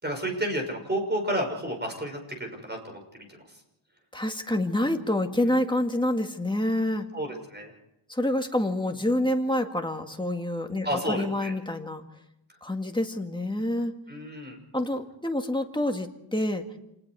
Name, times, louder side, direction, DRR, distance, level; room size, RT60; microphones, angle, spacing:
voice 1, 0.0-3.2 7.1-7.7 10.8-11.5 14.1-14.6, right 1 dB, 20° right, 3 dB, 6.0 m, -31 dB
voice 2, 4.1-7.1 8.1-12.0 12.6-13.9 14.7-16.6, left 1 dB, 10° left, 4 dB, 2.0 m, -27 dB
28.0 x 20.0 x 4.8 m, 0.88 s
wide cardioid pair, 130°, 48 cm